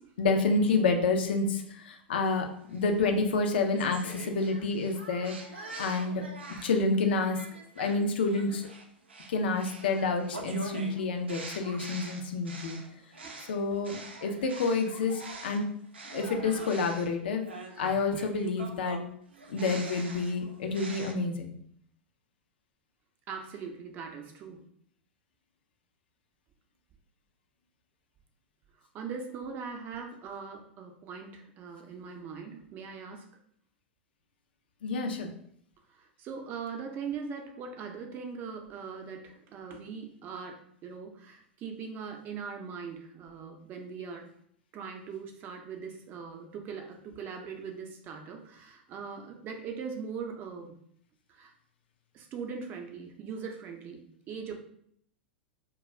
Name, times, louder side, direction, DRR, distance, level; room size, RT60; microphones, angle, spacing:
voice 1, 0.2-6.3 6.6-7.4 7.8-8.7 9.3-12.8 13.5-15.7 16.0-17.4 17.8-19.0 19.5-21.6 34.8-35.3, left 3 dB, 65° left, 5 dB, 0.5 m, -29 dB
sound 1, 2.7-6.8 7.3-15.6 15.9-21.1, right 3 dB, 80° right, 0.5 m, -45 dB
voice 2, 23.3-24.6 28.9-33.3 35.9-44.3 44.7-50.8 51.3-51.5 52.1-54.6, right 6 dB, 35° right, 4 dB, 0.5 m, -41 dB
2.3 x 2.3 x 3.1 m, 0.67 s
figure-of-eight pair, 95°, 6 cm